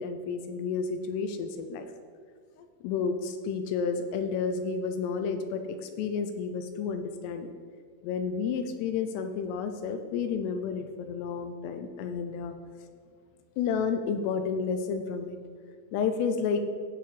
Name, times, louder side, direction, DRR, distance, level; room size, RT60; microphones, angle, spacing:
voice 1, 0.0-1.9 2.6-7.5 8.0-12.5 13.6-15.4 15.9-16.6, left 5 dB, 85° left, 7 dB, 2.6 m, -31 dB
15.5 x 5.9 x 3.3 m, 2.1 s
omnidirectional pair, 4.9 m